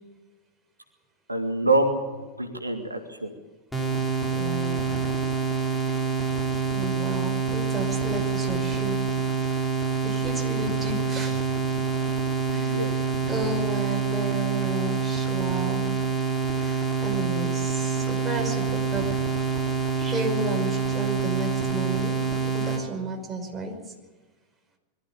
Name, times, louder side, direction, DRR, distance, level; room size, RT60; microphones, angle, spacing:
voice 1, 1.3-3.3 12.5-12.9, right 2 dB, 80° right, 5 dB, 2.0 m, -26 dB
sound 1, 3.7-22.8, right 5 dB, 5° left, 4.5 m, -26 dB
voice 2, 4.3-4.9 6.7-9.7 10.0-11.5 12.5-13.0 13.3-16.0 16.6-19.0 20.0-23.7, right 2 dB, 10° right, 1 dB, 5.7 m, -32 dB
22.5 x 14.0 x 9.0 m, 1.3 s
figure-of-eight pair, 90°, 0 cm